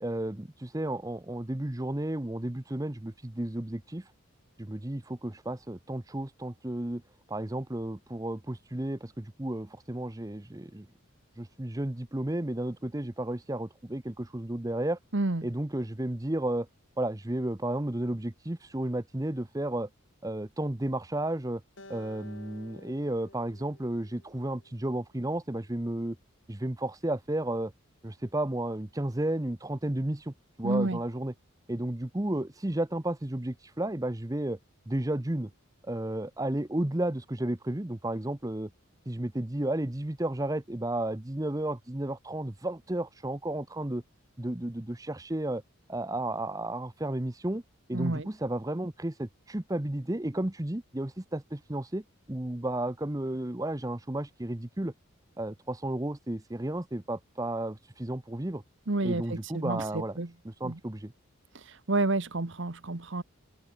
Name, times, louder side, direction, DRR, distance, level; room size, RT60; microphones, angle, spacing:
voice 1, 0.0-4.1 4.6-7.0 7.3-10.9 11.4-15.0 15.4-16.7 17.0-19.9 20.2-21.6 21.9-26.2 26.5-27.7 28.0-31.3 31.7-34.6 34.9-35.5 35.8-38.7 39.1-44.0 44.4-45.6 45.9-47.6 47.9-54.9 55.4-58.6 59.0-60.2 60.5-61.1, right 1 dB, 15° right, 0.8 m, -33 dB
voice 2, 15.1-15.4 30.6-31.0 47.9-48.3 58.9-60.3 60.6-60.8 61.5-63.2, right 2 dB, 55° right, 1.2 m, -30 dB
Acoustic guitar, 21.8-25.1, left 2 dB, 60° left, 6.8 m, -53 dB
open air
head